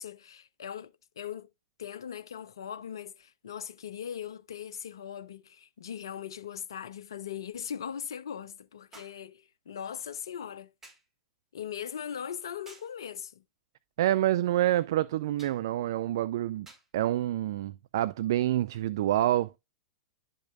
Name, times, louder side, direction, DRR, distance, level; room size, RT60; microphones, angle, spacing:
voice 1, 0.0-1.5 1.8-10.7 11.5-13.4, left 8 dB, 70° left, 0.7 m, -40 dB
sound 1, 5.1-5.2 8.9-9.3 10.8-11.1 12.7-13.0 15.4-15.6 16.7-16.9 18.0-18.1, right 2 dB, 15° right, 4.0 m, -53 dB
voice 2, 14.0-16.7 16.9-19.5, right 13 dB, 60° right, 0.4 m, -27 dB
12.0 x 5.3 x 2.3 m
figure-of-eight pair, 100°, 2 cm